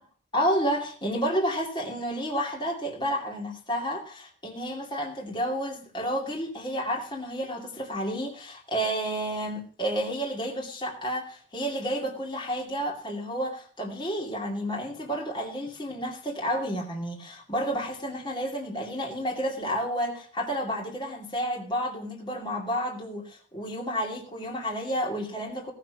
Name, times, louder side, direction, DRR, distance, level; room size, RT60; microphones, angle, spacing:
voice 1, 0.3-25.7, equal, 20° left, -2 dB, 2.6 m, -30 dB
17.5 x 6.6 x 6.2 m, 0.43 s
head